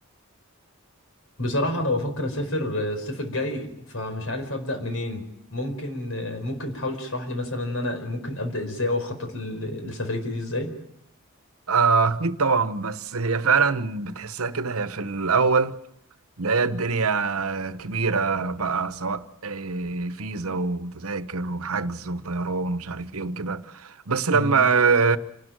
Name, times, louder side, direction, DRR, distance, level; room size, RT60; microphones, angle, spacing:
voice 1, 1.4-5.2 5.5-10.7 24.3-24.5, left 1 dB, 70° left, 4.9 m, -29 dB
voice 2, 11.7-15.8 16.4-25.2, right 4 dB, 80° right, 1.1 m, -24 dB
28.0 x 13.0 x 9.2 m
head